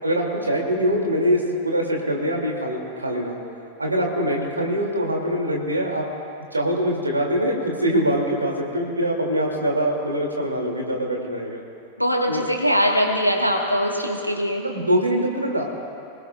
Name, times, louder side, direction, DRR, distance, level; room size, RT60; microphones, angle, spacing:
voice 1, 0.0-3.4 3.8-6.1 6.5-11.6 12.3-12.4 14.6-15.6, equal, 80° right, 0 dB, 2.6 m, -23 dB
voice 2, 12.0-14.7, equal, 90° left, 1 dB, 1.6 m, -22 dB
24.5 x 20.0 x 2.4 m, 2.5 s
figure-of-eight pair, 90°, 0 cm